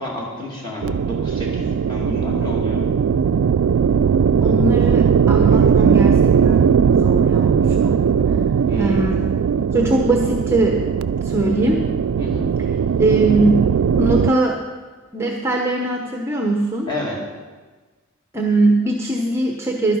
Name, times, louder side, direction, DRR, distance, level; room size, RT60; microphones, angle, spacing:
voice 1, 0.0-2.9 8.7-9.1 12.2-12.5 16.9-17.2, left 1 dB, 20° left, -3 dB, 2.4 m, -30 dB
sound 1, 0.8-14.3, right 7 dB, 80° right, 0.3 m, -18 dB
voice 2, 4.4-8.4 8.8-9.3 9.7-10.8 11.2-11.9 13.0-13.6 14.0-14.6 15.1-16.9 18.3-20.0, right 2 dB, 10° right, 1 dB, 0.8 m, -21 dB
12.0 x 10.5 x 5.4 m, 1.3 s
head